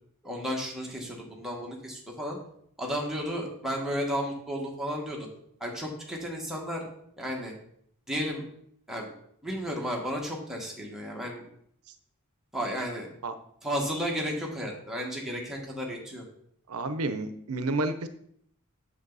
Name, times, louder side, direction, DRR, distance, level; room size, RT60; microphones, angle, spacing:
voice 1, 0.2-2.4 2.8-5.3 5.6-6.9 7.2-7.5 8.1-8.4 8.9-9.1 9.4-11.4 12.5-13.1 13.6-16.2, equal, ahead, -2 dB, 1.8 m, -33 dB
voice 2, 16.7-18.1, right 2 dB, 75° right, 10 dB, 0.7 m, -30 dB
8.0 x 7.0 x 4.1 m, 0.67 s
head